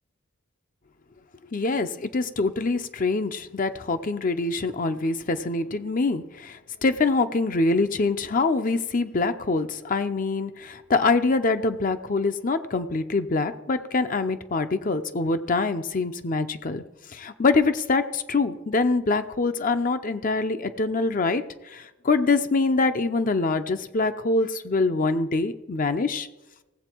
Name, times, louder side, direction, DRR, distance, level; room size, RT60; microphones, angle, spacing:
voice 1, 1.5-16.8 17.1-26.3, left 3 dB, 40° left, 9 dB, 0.6 m, -24 dB
18.0 x 7.8 x 4.5 m, 1.0 s
head